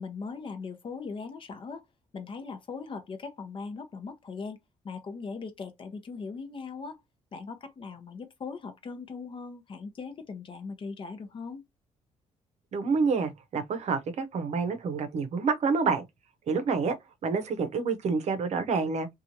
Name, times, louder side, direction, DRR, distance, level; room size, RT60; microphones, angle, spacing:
voice 1, 0.0-1.8 2.1-4.6 4.8-7.0 7.3-11.6, left 4 dB, 40° left, 0.7 m, -39 dB
voice 2, 12.7-16.0 16.5-16.9 17.2-19.1, right 4 dB, 60° right, 0.7 m, -28 dB
2.8 x 2.4 x 2.7 m
cardioid pair, 110°, 13 cm